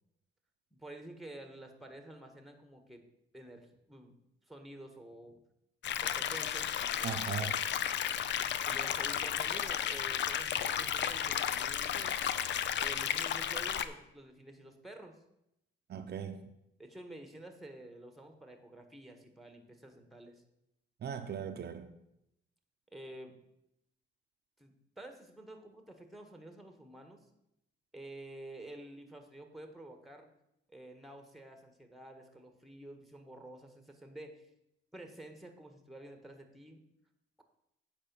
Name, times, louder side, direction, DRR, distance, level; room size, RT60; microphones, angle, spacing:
voice 1, 0.7-3.0 3.3-4.1 4.5-5.4 6.0-7.1 8.6-12.3 12.8-15.2 16.8-20.4 22.9-23.4 24.6-27.3 27.9-30.3 30.7-34.5 34.9-36.8, right 1 dB, ahead, 1.5 m, -50 dB
sound 1, 5.8-13.9, left 9 dB, 65° left, 0.6 m, -33 dB
voice 2, 7.0-7.6 15.9-16.5 21.0-21.9, right 7 dB, 55° right, 0.7 m, -38 dB
8.8 x 5.0 x 6.9 m
cardioid pair, 90°, 20 cm